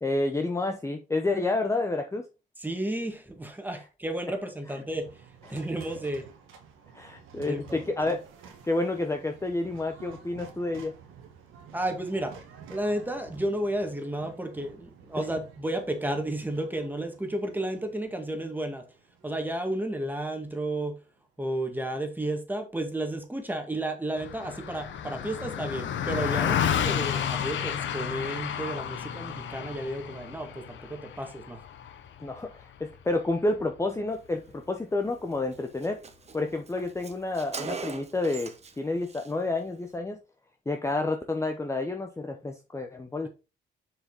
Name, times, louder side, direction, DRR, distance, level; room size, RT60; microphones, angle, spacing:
voice 1, 0.0-2.3 6.9-10.9 15.2-15.3 32.2-36.0 36.3-40.2 40.7-43.3, left 2 dB, 15° left, 0.8 m, -30 dB
voice 2, 2.6-5.2 5.5-6.3 7.4-8.2 11.7-12.4 12.7-18.9 19.2-21.0 21.4-31.6 43.2-43.3, right 1 dB, 10° right, 1.8 m, -32 dB
sound 1, 4.9-21.1, right 7 dB, 90° right, 1.6 m, -51 dB
Car passing by, 24.2-33.8, left 9 dB, 70° left, 1.0 m, -31 dB
Car, 35.1-35.2 35.5-35.6 35.8-38.8 39.0-39.3, right 5 dB, 35° right, 1.1 m, -40 dB
6.5 x 5.1 x 3.9 m
cardioid pair, 90°, 20 cm